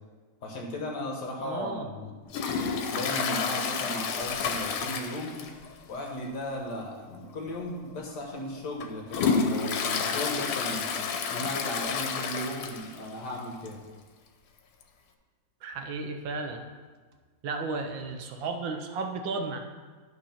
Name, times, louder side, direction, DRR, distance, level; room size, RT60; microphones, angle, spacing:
voice 1, 0.4-2.1 2.9-5.5 5.8-10.8 11.3-13.8, left 1 dB, 55° left, -1 dB, 1.7 m, -36 dB
voice 2, 1.4-1.9 15.6-16.6 17.4-19.6, right 3 dB, 65° right, 4 dB, 1.5 m, -34 dB
Toilet flush, 2.3-5.7 6.0-6.1 6.6-6.7 7.5-7.6 8.2-13.1 13.4-13.5 13.7-13.8 14.8-14.9, left 5 dB, 80° left, 1.6 m, -30 dB
11.5 x 4.4 x 5.7 m, 1.4 s
omnidirectional pair, 2.3 m